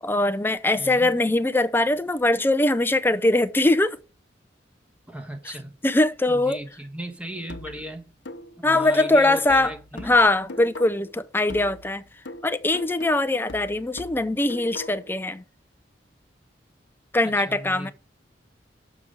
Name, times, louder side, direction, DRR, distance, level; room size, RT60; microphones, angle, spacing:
voice 1, 0.0-4.0 5.8-6.6 8.6-9.7 10.0-12.0 12.4-15.4 17.1-17.9, left 2 dB, 10° left, 0.5 m, -21 dB
voice 2, 0.7-1.2 5.1-5.7 6.3-8.1 8.6-10.2 17.2-17.9, equal, 10° right, 1.3 m, -37 dB
sound 1, 7.5-11.2 11.5-15.2, left 2 dB, 90° left, 0.9 m, -41 dB
6.9 x 5.9 x 4.9 m
head